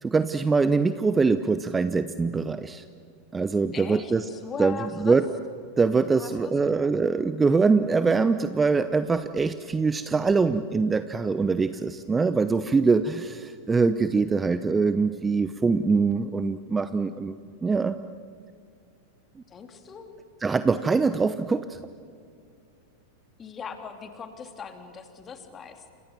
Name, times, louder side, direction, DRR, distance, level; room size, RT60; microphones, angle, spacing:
voice 1, 0.0-2.8 3.3-4.2 4.6-5.2 5.8-17.4 17.6-18.0 20.4-21.8, right 4 dB, 15° right, 13 dB, 0.8 m, -23 dB
voice 2, 3.7-5.2 6.1-6.9 19.5-20.1 23.4-25.9, left 6 dB, 20° left, 6 dB, 3.1 m, -40 dB
30.0 x 26.5 x 7.2 m, 2.4 s
figure-of-eight pair, 90°, 0 cm